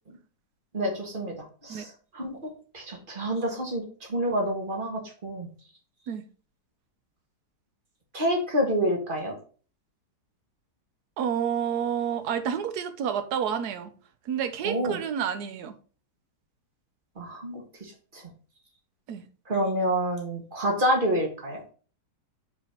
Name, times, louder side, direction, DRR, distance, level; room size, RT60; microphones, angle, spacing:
voice 1, 0.7-1.3 1.6-1.9 2.1-2.4 2.7-3.8 4.1-5.5 8.1-9.3 14.6-15.0 17.2-18.2 19.5-21.6, equal, 30° right, 1.7 m, -28 dB
voice 2, 11.2-13.9 14.3-15.7 19.1-19.2, right 8 dB, 65° right, 1.3 m, -29 dB
5.6 x 4.2 x 4.5 m
omnidirectional pair, 1.9 m